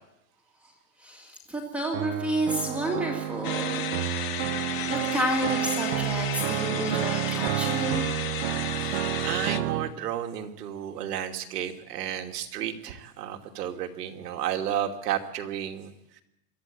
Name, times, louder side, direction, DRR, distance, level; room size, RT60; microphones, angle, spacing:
voice 1, 1.0-4.4 4.9-8.1, right 1 dB, 5° right, -1 dB, 2.3 m, -30 dB
sound 1, 1.9-9.9, right 14 dB, 40° right, 0.9 m, -30 dB
sound 2, 3.4-9.6, left 11 dB, 25° left, 0.8 m, -34 dB
voice 2, 9.2-15.9, right 10 dB, 75° right, 4 dB, 2.8 m, -32 dB
24.0 x 13.5 x 8.8 m, 0.86 s
supercardioid pair, 170°, 48 cm